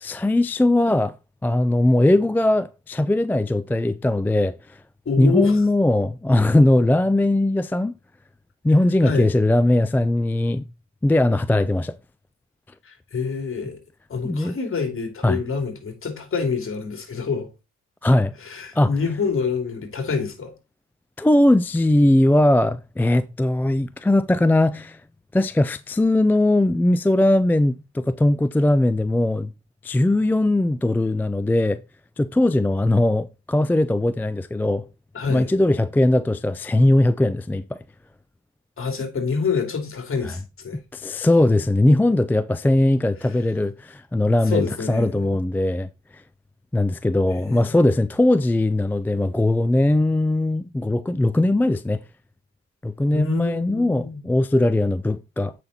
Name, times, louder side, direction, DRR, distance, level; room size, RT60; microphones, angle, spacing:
voice 1, 0.0-1.2 1.4-4.8 5.2-7.9 8.6-10.6 11.0-12.0 14.2-14.5 15.2-15.4 18.0-18.3 18.7-18.9 21.2-25.0 25.3-29.5 29.8-31.8 32.2-34.9 35.3-37.8 40.9-46.2 46.7-52.0 52.8-55.5, left 1 dB, 5° left, 0.4 m, -20 dB
voice 2, 5.0-5.6 9.0-9.3 12.8-13.8 14.1-17.5 18.4-20.5 35.1-35.5 38.8-40.8 44.4-45.3 47.3-47.7 53.1-54.2, left 5 dB, 45° left, 3.1 m, -27 dB
8.2 x 5.8 x 4.2 m
cardioid pair, 90°, 30 cm